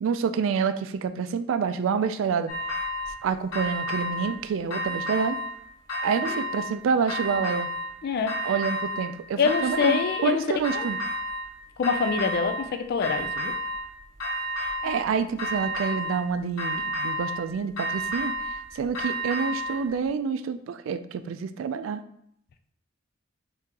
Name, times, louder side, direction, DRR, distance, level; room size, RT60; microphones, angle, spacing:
voice 1, 0.0-2.5 3.2-5.4 6.0-7.7 8.4-11.0 14.6-18.3 18.7-22.0, right 6 dB, 70° right, 12 dB, 0.3 m, -28 dB
sound 1, 2.5-3.2 3.5-4.4 4.7-5.6 5.9-6.7 7.1-7.9 8.3-9.1 9.4-10.3 10.6-11.5 11.8-12.7 13.0-13.9 14.2-15.1 15.4-16.2 16.6-17.4 17.8-19.8, equal, 85° left, 1.1 m, -31 dB
voice 2, 8.0-8.5 9.4-10.5 10.7-10.9 11.8-13.5 14.8-15.0, left 5 dB, 50° left, 6 dB, 0.4 m, -26 dB
3.7 x 3.5 x 2.8 m, 0.71 s
head